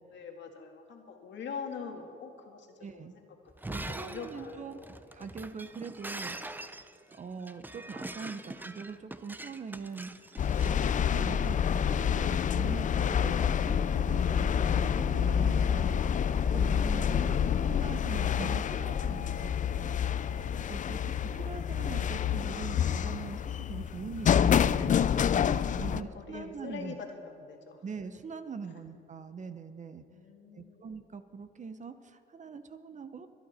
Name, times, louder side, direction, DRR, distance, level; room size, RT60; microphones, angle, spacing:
voice 1, 0.1-2.7 2.9-3.3 3.6-4.9 5.2-5.3 16.9-17.6 20.9-21.1 25.8-27.8 30.1-30.9, left 5 dB, 65° left, 3 dB, 1.8 m, -44 dB
voice 2, 2.8-3.1 3.7-6.4 7.1-20.3 20.6-25.0 25.5-27.0 27.8-30.0 30.5-33.3, right 5 dB, 40° right, 10 dB, 0.8 m, -42 dB
Shatter, 3.5-11.5, right 2 dB, 10° right, 0.6 m, -43 dB
sound 1, 10.4-26.0, left 8 dB, 40° left, 0.4 m, -28 dB
23.5 x 8.9 x 4.3 m, 2.5 s
cardioid pair, 90°, 20 cm